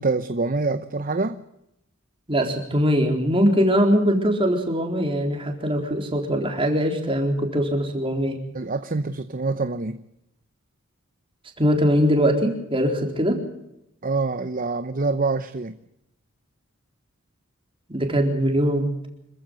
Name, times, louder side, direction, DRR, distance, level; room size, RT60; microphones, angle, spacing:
voice 1, 0.0-1.4 8.5-10.0 14.0-15.8, right 3 dB, 40° right, 0.8 m, -25 dB
voice 2, 2.3-8.4 11.6-13.4 17.9-19.1, equal, 25° right, 4.1 m, -21 dB
26.5 x 15.0 x 7.7 m
head